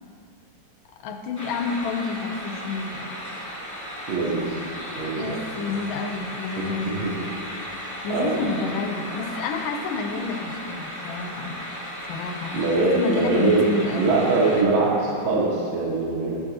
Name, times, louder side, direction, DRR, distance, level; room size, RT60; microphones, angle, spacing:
voice 1, 1.0-3.2 5.2-7.1 8.0-11.7 12.1-14.2, left 4 dB, 80° left, 5 dB, 1.4 m, -29 dB
sound 1, 1.4-14.6, equal, 30° left, 0.3 m, -35 dB
voice 2, 4.1-4.6 5.0-5.8 6.6-7.1 8.1-8.4 12.5-13.7 14.0-16.4, right 3 dB, 70° right, -3 dB, 1.8 m, -23 dB
12.0 x 7.1 x 2.8 m, 2.6 s
omnidirectional pair, 2.3 m